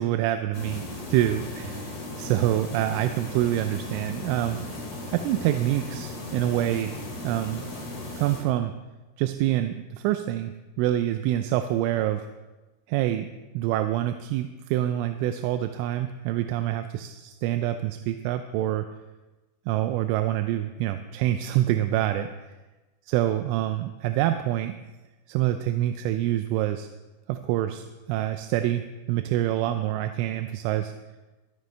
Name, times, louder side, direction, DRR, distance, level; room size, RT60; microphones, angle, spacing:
voice 1, 0.0-0.8 1.1-4.6 5.1-7.0 7.2-7.6 8.2-8.7 9.2-12.3 12.9-13.3 13.5-18.9 19.7-22.3 23.1-24.7 25.3-26.9 27.3-30.9, right 13 dB, 85° right, 8 dB, 3.0 m, -26 dB
sound 1, 0.5-8.4, left 2 dB, 40° left, 3.8 m, -37 dB
23.0 x 9.0 x 3.3 m, 1.1 s
omnidirectional pair, 5.7 m